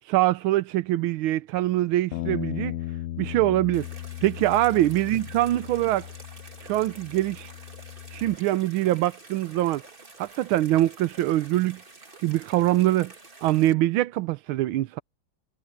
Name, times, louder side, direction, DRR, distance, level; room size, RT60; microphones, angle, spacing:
voice 1, 0.1-2.8 3.2-3.9 4.2-6.1 6.6-7.5 8.1-9.8 10.2-11.8 12.2-13.1 13.4-15.0, right 15 dB, 90° right, 1.5 m, -23 dB
Bass guitar, 2.1-8.4, left 14 dB, 85° left, 0.8 m, -36 dB
sound 1, 3.7-13.7, right 3 dB, 25° right, 2.3 m, -49 dB
omnidirectional pair, 2.2 m